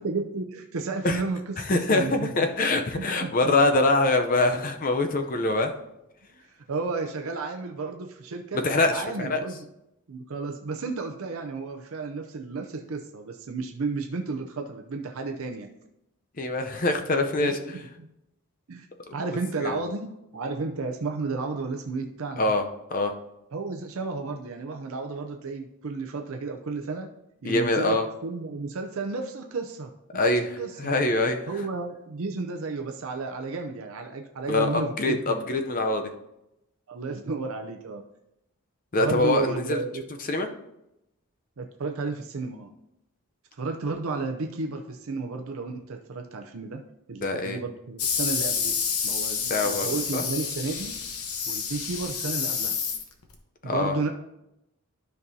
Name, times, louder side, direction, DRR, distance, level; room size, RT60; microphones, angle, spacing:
voice 1, 0.0-2.3 2.6-3.5 6.4-8.6 8.9-9.6 10.1-15.7 17.4-18.1 18.7-18.9 19.1-22.5 23.5-27.1 27.4-30.3 30.6-30.9 31.5-35.5 36.9-38.0 39.0-40.0 41.6-42.7 43.6-46.8 47.1-48.8 49.0-50.9 51.5-52.8 53.6-54.1, right 3 dB, 70° right, 4 dB, 0.6 m, -32 dB
voice 2, 1.6-5.7 8.5-9.4 16.4-17.6 19.6-19.8 22.4-22.6 22.9-23.1 27.4-28.1 30.1-31.4 34.5-36.0 38.9-39.8 40.3-40.5 47.2-47.6 49.5-50.2 53.6-53.9, left 2 dB, 40° left, 6 dB, 0.6 m, -24 dB
sound 1, 48.0-53.4, left 6 dB, 80° left, 1.0 m, -29 dB
12.5 x 5.3 x 2.7 m, 0.88 s
head